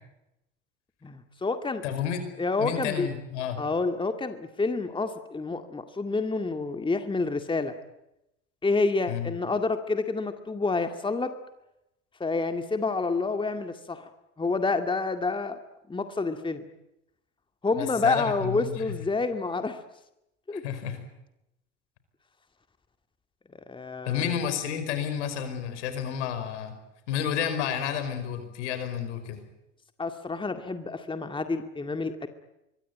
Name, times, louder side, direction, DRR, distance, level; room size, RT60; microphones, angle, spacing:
voice 1, 1.0-1.8 2.4-3.1 3.6-7.8 8.6-11.3 12.2-14.1 14.4-15.6 15.9-16.6 17.6-19.8 20.5-20.6 23.5-24.4 30.0-32.3, left 3 dB, 15° left, 8 dB, 2.2 m, -28 dB
voice 2, 1.8-2.2 2.6-3.6 9.1-9.3 17.8-18.7 20.5-21.0 24.0-26.7 27.1-29.4, left 8 dB, 70° left, 10 dB, 5.1 m, -30 dB
24.5 x 22.5 x 9.3 m, 0.87 s
hypercardioid pair, 80°, 36 cm